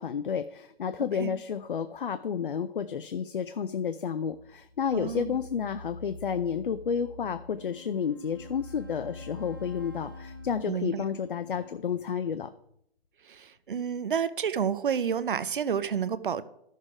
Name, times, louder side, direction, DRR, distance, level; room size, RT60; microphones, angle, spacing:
voice 1, 0.0-12.5, left 7 dB, 55° left, 10 dB, 0.6 m, -31 dB
sound 1, 4.3-10.6, left 2 dB, 80° left, 2.1 m, -46 dB
voice 2, 4.9-5.4 10.7-11.0 13.2-16.4, right 7 dB, 55° right, 15 dB, 0.7 m, -30 dB
Wind instrument woodwind instrument, 7.4-12.3, left 5 dB, 20° right, 0.5 m, -51 dB
13.0 x 6.6 x 4.9 m, 0.75 s
hypercardioid pair, 180°, 32 cm